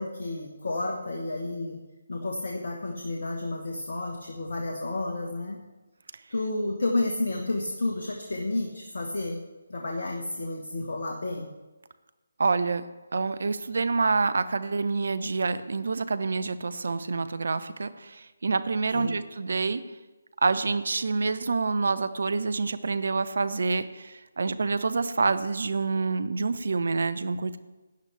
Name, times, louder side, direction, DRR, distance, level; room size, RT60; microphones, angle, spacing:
voice 1, 0.0-1.8 2.1-5.6 6.3-9.4 9.7-11.5 18.9-19.1, left 2 dB, 55° left, 1 dB, 1.3 m, -31 dB
voice 2, 12.4-12.8 13.1-19.9 20.4-27.6, right 4 dB, 55° right, 13 dB, 0.7 m, -27 dB
17.0 x 10.0 x 3.4 m, 1.1 s
figure-of-eight pair, 150°, 0 cm